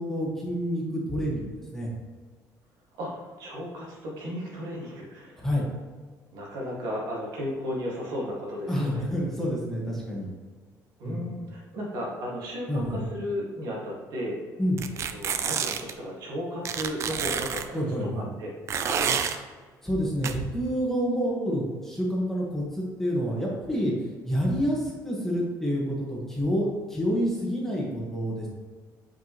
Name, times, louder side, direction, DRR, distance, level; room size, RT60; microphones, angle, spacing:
voice 1, 0.0-1.5 1.7-1.9 5.4-5.6 8.7-10.3 11.0-11.2 12.7-13.0 14.6-14.8 17.7-18.3 19.8-23.9 24.2-28.5, equal, 5° left, -4 dB, 1.5 m, -28 dB
voice 2, 3.0-5.5 6.3-9.0 11.0-14.4 15.1-18.5 18.8-19.4, equal, 70° right, -3 dB, 2.0 m, -34 dB
sound 1, 14.8-15.9 16.7-17.7 18.7-19.4 20.2-20.3, right 7 dB, 45° right, 0.4 m, -28 dB
8.3 x 4.7 x 3.1 m, 1.5 s
cardioid pair, 150°, 7 cm